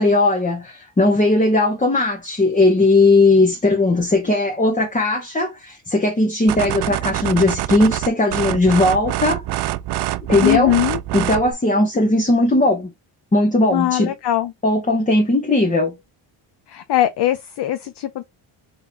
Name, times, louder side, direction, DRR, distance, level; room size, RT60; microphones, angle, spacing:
voice 1, 0.0-9.4 10.3-10.7 11.1-12.9 13.3-14.1 14.6-16.0, left 2 dB, 15° left, 0.9 m, -17 dB
sound 1, 6.5-11.5, right 14 dB, 60° right, 0.5 m, -25 dB
voice 2, 10.4-11.0 13.7-14.5 16.7-18.2, left 13 dB, 60° left, 0.7 m, -20 dB
3.9 x 3.6 x 2.8 m
cardioid pair, 90°, 47 cm